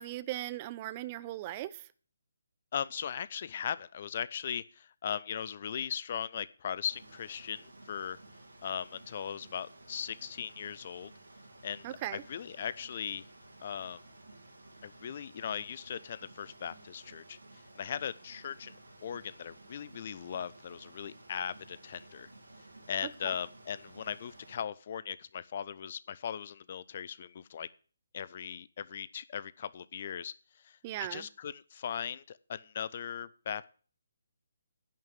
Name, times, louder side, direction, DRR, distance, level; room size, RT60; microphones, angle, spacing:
voice 1, 0.0-1.9 11.8-12.2 23.0-23.1 30.8-31.3, right 15 dB, 25° right, 16 dB, 0.5 m, -38 dB
voice 2, 2.7-8.2 8.6-11.1 11.6-11.9 12.1-13.2 13.6-14.0 14.8-18.7 19.0-22.3 22.9-27.7 28.1-30.3 30.6-33.7, left 8 dB, 40° left, 19 dB, 0.5 m, -38 dB
sound 1, 6.8-24.6, right 2 dB, 70° right, 3.1 m, -55 dB
10.5 x 6.3 x 7.7 m, 0.41 s
figure-of-eight pair, 145°, 0 cm